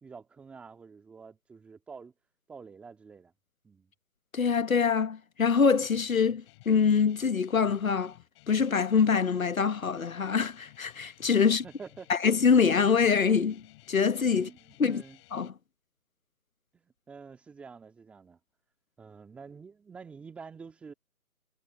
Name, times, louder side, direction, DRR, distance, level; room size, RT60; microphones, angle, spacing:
voice 1, 0.0-2.1 2.5-3.3 3.6-3.9 11.4-12.1 14.3-15.2 16.7-18.4 19.0-20.9, right 5 dB, 5° right, 1.8 m, -48 dB
voice 2, 4.3-8.1 8.5-11.6 12.1-13.6 13.9-14.5 14.8-15.0 15.3-15.5, left 6 dB, 65° left, 1.4 m, -24 dB
Guitar, 5.7-15.5, left 22 dB, 20° left, 7.1 m, -57 dB
figure-of-eight pair, 160°, 45 cm